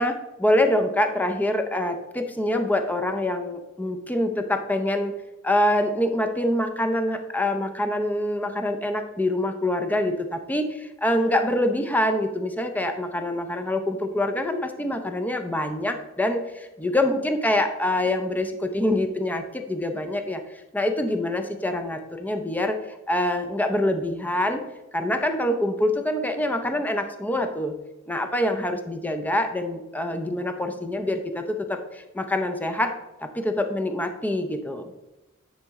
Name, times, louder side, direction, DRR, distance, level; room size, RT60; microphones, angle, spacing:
voice 1, 0.0-5.1 5.4-24.6 24.9-27.7 28.1-32.9 33.2-34.9, left 1 dB, 10° left, 6 dB, 0.5 m, -25 dB
9.8 x 4.3 x 3.6 m, 1.0 s
head